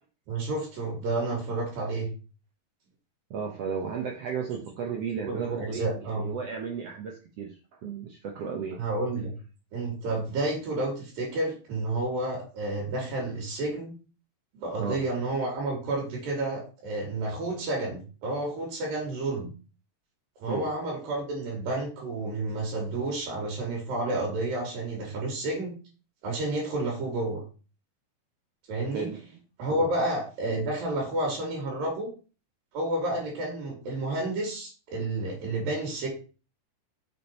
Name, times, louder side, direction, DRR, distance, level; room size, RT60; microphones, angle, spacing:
voice 1, 0.3-2.1 5.3-6.3 8.8-9.3 9.7-13.9 14.5-19.5 20.4-25.8 26.2-27.4 28.7-29.1 29.6-32.1 32.7-36.1, right 2 dB, 85° right, -1 dB, 4.0 m, -30 dB
voice 2, 3.3-7.5 7.8-8.8 14.8-15.0 20.5-20.7 28.9-29.2 29.7-29.9, right 6 dB, 70° right, 1 dB, 1.5 m, -34 dB
6.8 x 5.3 x 4.4 m, 0.35 s
omnidirectional pair, 3.9 m